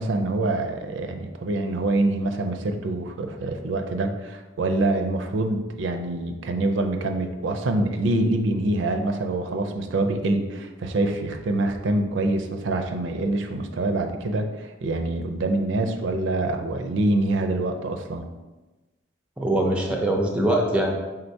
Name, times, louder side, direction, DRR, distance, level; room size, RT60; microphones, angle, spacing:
voice 1, 0.0-18.2, right 2 dB, 75° right, 6 dB, 0.4 m, -25 dB
voice 2, 19.4-20.9, right 1 dB, 5° right, 0 dB, 0.4 m, -22 dB
4.4 x 3.8 x 2.7 m, 1.2 s
head